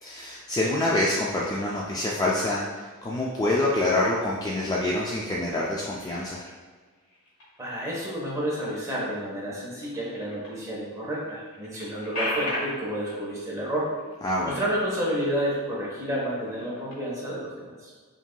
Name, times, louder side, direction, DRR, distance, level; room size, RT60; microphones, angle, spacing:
voice 1, 0.0-2.6 3.0-6.4 14.2-14.6, left 1 dB, 15° left, -5 dB, 0.3 m, -26 dB
sound 1, 2.2-2.8 3.3-4.0 4.4-5.1 5.4-10.6 11.0-11.1 11.3-15.3 15.6-15.8 16.3-17.3, left 1 dB, 70° left, 1.5 m, -39 dB
voice 2, 7.6-13.9 14.4-17.9, equal, 15° right, -6 dB, 1.1 m, -30 dB
5.7 x 2.7 x 2.2 m, 1.5 s
head